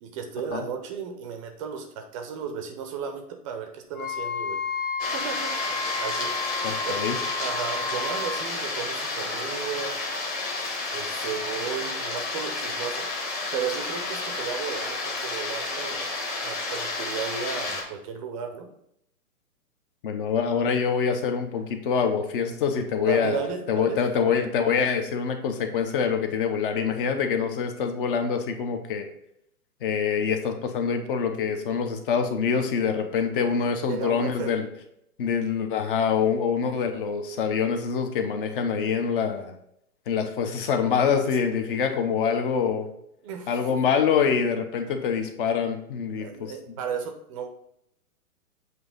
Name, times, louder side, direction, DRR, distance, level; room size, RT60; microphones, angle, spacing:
voice 1, 0.0-4.6 5.0-6.3 6.9-7.0 7.4-10.0 10.9-13.1 13.5-16.1 16.4-18.7 23.1-24.0 33.9-34.5 43.2-43.7 46.2-47.5, right 6 dB, 20° right, 5 dB, 0.6 m, -34 dB
Wind instrument woodwind instrument, 3.9-8.5, left 4 dB, 70° left, 1.8 m, -32 dB
sound 1, 5.0-17.8, left 3 dB, 20° left, 1.2 m, -31 dB
voice 2, 6.6-7.2 20.0-23.4 23.7-29.1 29.8-34.7 35.2-39.5 40.1-42.9 43.5-46.5, left 6 dB, 35° left, 6 dB, 0.9 m, -25 dB
7.8 x 2.8 x 5.2 m, 0.75 s
hypercardioid pair, 135°, 45 cm